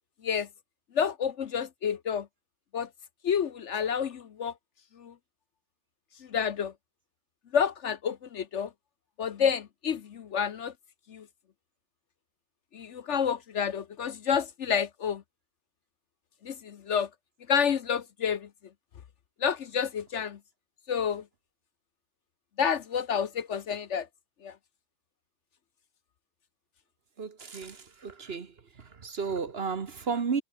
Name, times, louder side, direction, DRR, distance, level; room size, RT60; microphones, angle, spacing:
voice 1, 0.9-2.3 2.7-2.9 3.2-4.5 5.0-5.1 6.3-6.7 7.5-8.7 9.2-10.7 11.1-11.3 12.7-15.2 16.4-17.1 17.5-18.5 19.4-20.4 20.9-21.2 22.6-24.1 24.4-24.5, left 7 dB, 60° left, 1.1 m, -29 dB
voice 2, 27.2-28.5 28.8-30.4, right 5 dB, 45° right, 1.4 m, -33 dB
omnidirectional pair, 1.5 m